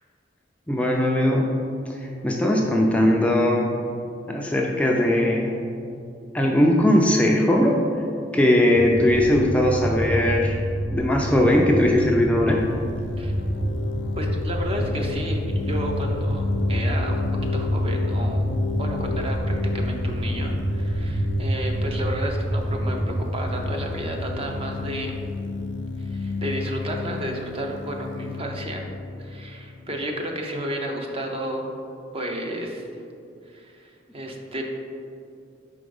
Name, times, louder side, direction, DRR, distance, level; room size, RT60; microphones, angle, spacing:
voice 1, 0.7-1.5 1.9-3.7 4.3-5.5 6.3-7.9 8.3-10.6 10.9-12.7, left 1 dB, 5° left, -1 dB, 0.4 m, -19 dB
sound 1, 8.7-25.5, equal, 60° right, 0.9 m, -28 dB
sound 2, 12.6-30.2, left 3 dB, 80° left, 0.4 m, -31 dB
voice 2, 14.2-17.2 17.5-18.5 18.8-25.1 26.0-28.8 29.2-31.7 32.1-32.8 33.5-34.6, right 1 dB, 30° right, 1 dB, 0.6 m, -32 dB
4.9 x 3.8 x 5.2 m, 2.5 s
head